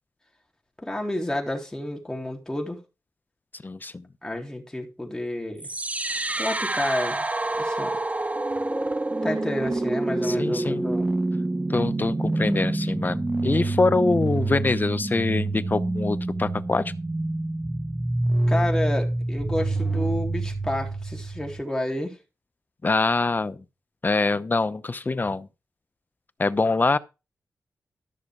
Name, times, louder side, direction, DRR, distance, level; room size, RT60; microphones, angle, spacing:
voice 1, 0.8-2.8 4.2-5.7 6.4-7.3 7.6-7.9 9.2-11.1 18.5-22.2, left 1 dB, 10° left, 3.7 m, -30 dB
voice 2, 3.6-4.1 10.2-10.9 11.7-16.9 22.8-23.6 24.0-25.5 26.4-27.0, left 3 dB, 35° left, 0.8 m, -24 dB
sound 1, 5.6-21.6, right 2 dB, 25° right, 0.9 m, -27 dB
13.5 x 6.5 x 4.8 m
cardioid pair, 70°, 6 cm